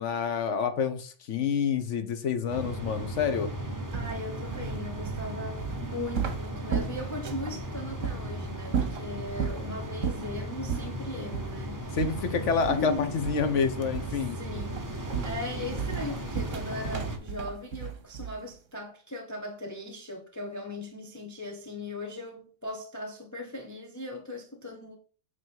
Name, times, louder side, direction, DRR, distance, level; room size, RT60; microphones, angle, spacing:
voice 1, 0.0-3.5 11.9-14.4, left 6 dB, 70° left, 1.3 m, -28 dB
sound 1, 2.5-17.2, right 1 dB, 15° right, 0.9 m, -36 dB
voice 2, 3.9-12.1 12.7-13.1 14.1-25.0, left 2 dB, 15° left, 1.0 m, -38 dB
sound 2, 3.9-7.6 8.0-8.2 8.7-9.6 10.0-10.3 10.7-10.9 11.3-11.6 12.0-12.9 13.2-13.6 13.9-14.3 14.6-18.5, right 7 dB, 80° right, 1.3 m, -34 dB
8.6 x 3.1 x 4.6 m
omnidirectional pair, 1.3 m